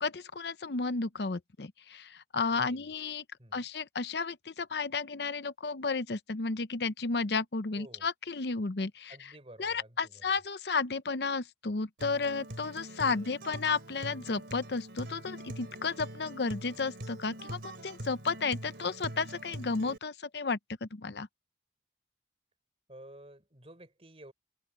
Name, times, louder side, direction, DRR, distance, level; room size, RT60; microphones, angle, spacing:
voice 1, 0.0-3.2 3.5-9.2 9.6-21.3, left 4 dB, 70° left, 0.7 m, -33 dB
voice 2, 2.5-2.9 3.4-3.7 7.7-8.1 9.1-10.2 13.1-13.5 22.9-24.3, right 1 dB, 35° right, 4.3 m, -52 dB
Acoustic guitar, 12.0-20.0, right 1 dB, 80° right, 3.0 m, -43 dB
head